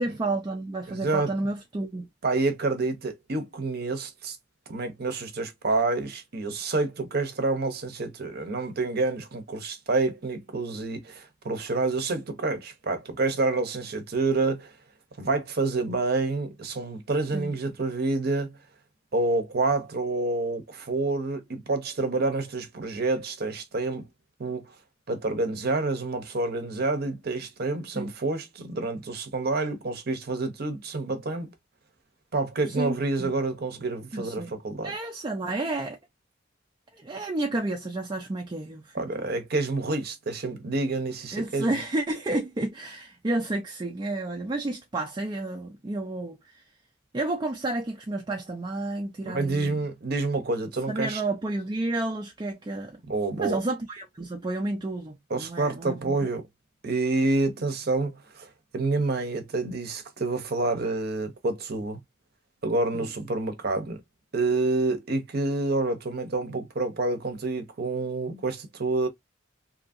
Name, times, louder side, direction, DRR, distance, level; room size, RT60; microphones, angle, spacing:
voice 1, 0.0-2.1 17.3-17.5 27.9-28.1 32.8-33.3 34.1-34.5 34.8-36.0 37.0-39.3 41.3-46.4 47.1-49.8 50.9-53.0 53.4-56.1 62.9-63.1, right 2 dB, 25° right, 0.4 m, -31 dB
voice 2, 0.9-1.3 2.2-4.4 4.7-14.7 15.2-18.6 19.1-24.1 24.4-24.7 25.1-31.5 32.3-34.9 38.9-41.7 49.3-51.2 53.1-53.6 55.3-56.5 56.8-62.0 62.6-64.0 64.3-69.1, right 3 dB, 55° right, 0.7 m, -28 dB
2.7 x 2.6 x 2.4 m
head